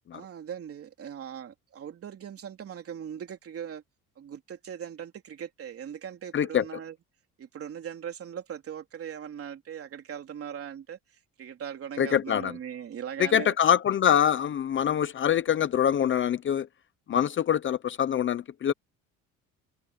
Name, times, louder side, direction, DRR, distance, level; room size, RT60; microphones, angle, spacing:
voice 1, 0.1-3.8 4.2-7.0 7.4-11.0 11.4-13.6, right 8 dB, 45° right, 3.5 m, -39 dB
voice 2, 6.3-6.6 12.0-12.5 13.2-16.7 17.1-18.7, left 9 dB, 40° left, 0.7 m, -24 dB
cardioid pair, 145°, 32 cm